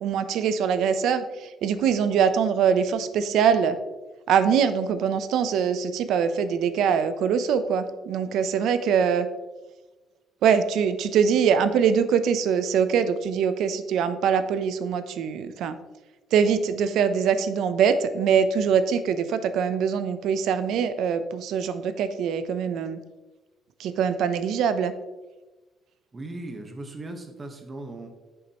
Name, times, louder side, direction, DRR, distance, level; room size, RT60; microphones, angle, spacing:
voice 1, 0.0-3.8 4.3-9.3 10.4-15.8 16.3-23.0 23.8-24.9, right 7 dB, 75° right, 11 dB, 0.6 m, -23 dB
voice 2, 26.1-28.1, right 2 dB, 25° right, 4 dB, 1.2 m, -38 dB
8.4 x 7.1 x 3.0 m, 1.2 s
cardioid pair, 130°, 0 cm